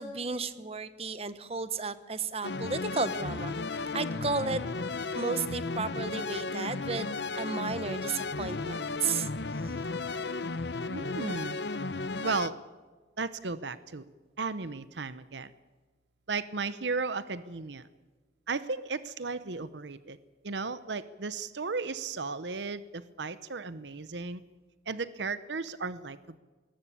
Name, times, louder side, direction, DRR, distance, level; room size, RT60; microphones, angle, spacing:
voice 1, 0.0-4.6 5.1-9.3 9.6-9.8, right 4 dB, 35° right, 13 dB, 1.1 m, -33 dB
sound 1, 2.4-12.5, left 3 dB, 70° left, 0.8 m, -34 dB
voice 2, 10.9-11.6 12.2-12.6 13.2-14.0 14.4-15.5 16.3-17.9 18.5-20.2 20.4-24.4 24.9-26.4, right 4 dB, 80° right, 14 dB, 0.8 m, -35 dB
20.5 x 19.5 x 8.6 m, 1.3 s
head